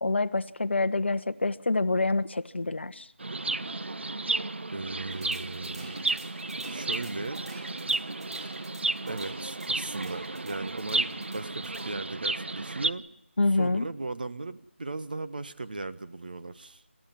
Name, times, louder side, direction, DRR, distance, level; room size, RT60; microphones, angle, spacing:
voice 1, 0.0-3.1 13.4-13.9, left 3 dB, 60° left, 1.0 m, -26 dB
Chirp tweet, 3.2-12.9, right 2 dB, 60° right, 0.9 m, -33 dB
voice 2, 4.7-6.1 6.7-7.4 9.1-13.0 13.5-16.8, right 3 dB, 40° right, 1.4 m, -37 dB
sound 1, 5.1-12.0, right 2 dB, 25° right, 3.0 m, -50 dB
28.0 x 14.5 x 9.4 m
figure-of-eight pair, 175°, 7 cm